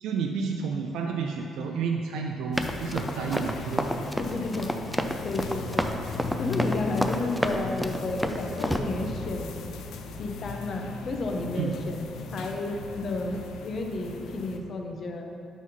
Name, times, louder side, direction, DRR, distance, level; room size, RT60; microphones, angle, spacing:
voice 1, 0.0-3.9 11.5-11.7, right 5 dB, 85° right, 2 dB, 0.3 m, -30 dB
sound 1, 2.5-14.6, left 4 dB, 85° left, 0.4 m, -37 dB
Run, 2.6-8.8, equal, ahead, 0.4 m, -30 dB
voice 2, 4.2-4.7 5.2-5.9 6.4-9.5 10.2-12.1 12.3-15.3, left 2 dB, 50° left, 2 dB, 0.8 m, -32 dB
6.1 x 3.9 x 5.4 m, 2.6 s
cardioid pair, 90°, 0 cm